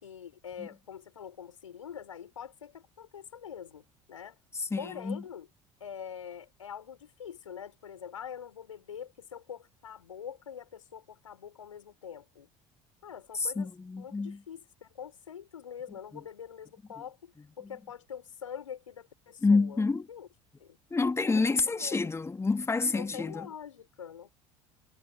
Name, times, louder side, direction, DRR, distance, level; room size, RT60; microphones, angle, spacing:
voice 1, 0.0-4.4 4.8-5.5 5.8-12.5 13.0-20.3 20.6-20.8 21.2-22.1 22.9-24.3, left 8 dB, 75° left, 5.7 m, -44 dB
voice 2, 4.7-5.2 13.6-14.4 19.4-20.0 20.9-23.5, left 3 dB, 15° left, 2.6 m, -28 dB
figure-of-eight pair, 60°, 17 cm